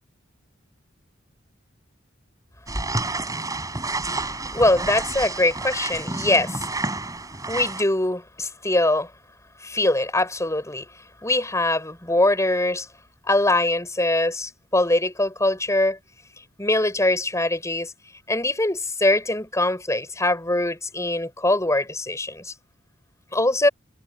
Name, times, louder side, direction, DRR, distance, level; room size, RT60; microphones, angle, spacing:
sound 1, 2.7-7.8, right 2 dB, 15° right, 7.5 m, -29 dB
voice 1, 4.5-6.7 7.5-9.1 9.6-10.9 11.2-12.9 13.2-16.0 16.6-17.9 18.3-22.5 23.3-23.7, left 2 dB, 15° left, 6.6 m, -22 dB
head